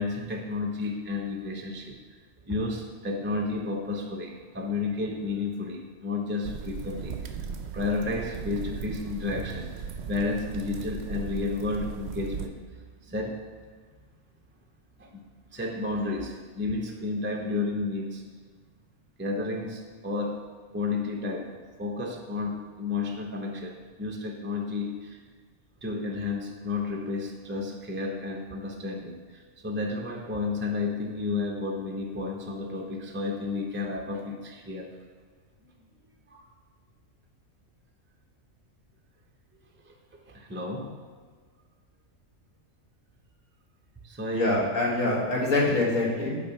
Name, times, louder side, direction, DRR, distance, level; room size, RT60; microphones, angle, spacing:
voice 1, 0.0-2.2 2.4-7.4 7.7-12.6 13.0-13.4 15.0-15.2 15.5-18.2 19.2-20.5 20.7-25.2 25.8-34.9 36.3-36.5 39.8-39.9 40.3-41.0 44.0-44.6, left 3 dB, 15° right, 1 dB, 0.5 m, -32 dB
sound 1, 6.4-12.5, right 6 dB, 60° right, 0.8 m, -37 dB
voice 2, 44.3-46.4, left 2 dB, 70° left, -4 dB, 2.0 m, -25 dB
8.8 x 3.4 x 5.8 m, 1.5 s
omnidirectional pair, 1.4 m